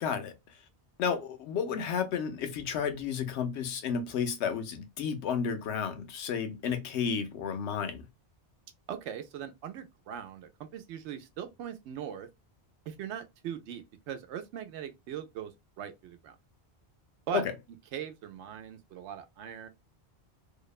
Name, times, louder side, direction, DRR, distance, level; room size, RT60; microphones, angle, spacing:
voice 1, 0.0-0.3 1.0-8.0 17.3-17.5, left 7 dB, 80° left, 0.9 m, -32 dB
voice 2, 8.9-12.3 12.9-16.4 17.3-17.4 17.9-19.7, right 9 dB, 90° right, 0.9 m, -40 dB
2.7 x 2.0 x 2.3 m
omnidirectional pair, 1.1 m